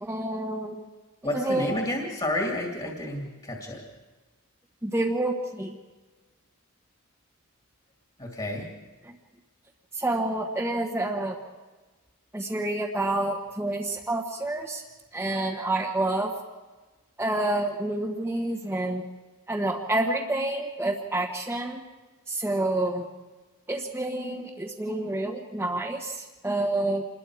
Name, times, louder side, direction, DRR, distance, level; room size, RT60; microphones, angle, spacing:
voice 1, 0.0-0.8 1.3-1.7 4.8-5.8 9.9-11.4 12.3-14.8 15.1-16.3 17.2-19.1 19.5-21.8 22.3-23.0 23.7-27.0, right 2 dB, 10° right, -2 dB, 1.3 m, -28 dB
voice 2, 1.2-3.8 8.2-8.7, left 1 dB, 25° left, 0 dB, 2.6 m, -30 dB
27.5 x 21.5 x 4.9 m, 1.3 s
head